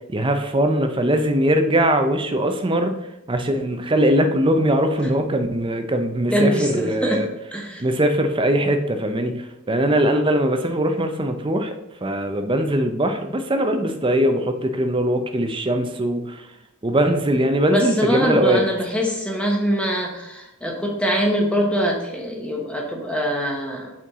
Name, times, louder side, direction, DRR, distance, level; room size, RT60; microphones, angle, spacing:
voice 1, 0.1-3.0 3.3-7.3 7.8-11.7 12.0-16.5 16.8-18.6, right 1 dB, 20° right, 6 dB, 0.6 m, -21 dB
voice 2, 6.3-7.8 17.7-23.9, equal, 5° left, 0 dB, 1.1 m, -23 dB
8.3 x 4.5 x 3.6 m, 0.90 s
head